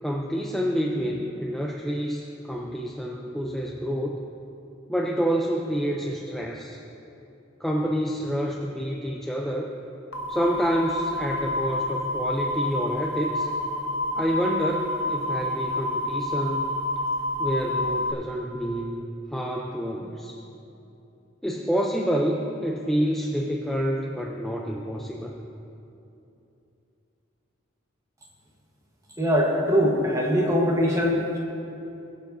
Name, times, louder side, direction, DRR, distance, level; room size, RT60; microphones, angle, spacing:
voice 1, 0.0-4.2 4.9-6.8 7.6-9.8 10.3-13.5 14.2-16.7 17.4-19.0 19.3-20.4 21.4-25.4, equal, ahead, -1 dB, 0.5 m, -28 dB
sound 1, 10.1-18.1, left 1 dB, 85° left, 0.8 m, -28 dB
voice 2, 29.2-31.4, equal, 15° right, -1 dB, 1.2 m, -22 dB
21.5 x 7.3 x 2.7 m, 2.8 s
head